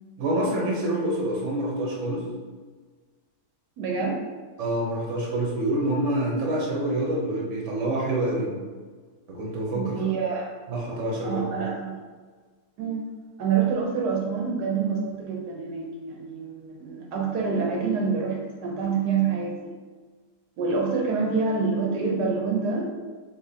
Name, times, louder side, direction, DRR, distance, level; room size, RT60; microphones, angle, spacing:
voice 1, 0.2-2.2 4.6-8.5 9.3-10.0 10.7-11.4, right 1 dB, 50° right, -2 dB, 1.2 m, -26 dB
voice 2, 3.8-4.2 9.7-10.5 11.2-12.0 12.8-13.0 13.4-19.7 20.6-22.9, right 5 dB, 80° right, -1 dB, 1.3 m, -27 dB
4.9 x 3.6 x 2.8 m, 1.5 s
omnidirectional pair, 1.8 m